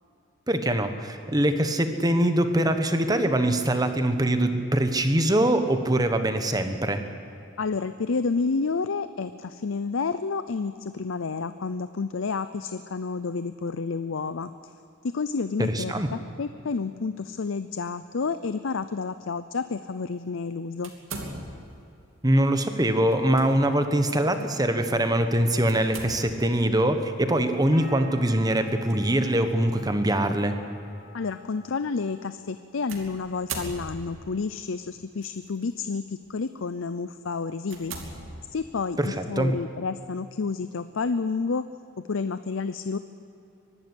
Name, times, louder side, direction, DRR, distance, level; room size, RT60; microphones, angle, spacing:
voice 1, 0.5-7.0 15.6-16.1 22.2-30.6 39.0-39.5, right 1 dB, 20° right, 7 dB, 1.2 m, -23 dB
voice 2, 7.6-14.5 15.0-20.9 31.1-37.9 38.5-41.6 42.1-43.0, left 4 dB, 70° left, 12 dB, 0.6 m, -30 dB
sound 1, 20.8-21.8 23.1-23.5 23.9-24.0 25.7-26.6 28.6-28.9 29.8-29.9 32.9-34.3 35.2-35.6 36.2-36.4 37.0-37.1 37.7-38.9, right 3 dB, 75° right, 2.7 m, -39 dB
sound 2, 27.7-33.4 33.7-34.4, left 2 dB, 45° left, 4.9 m, -50 dB
24.0 x 12.0 x 9.8 m, 2.7 s
head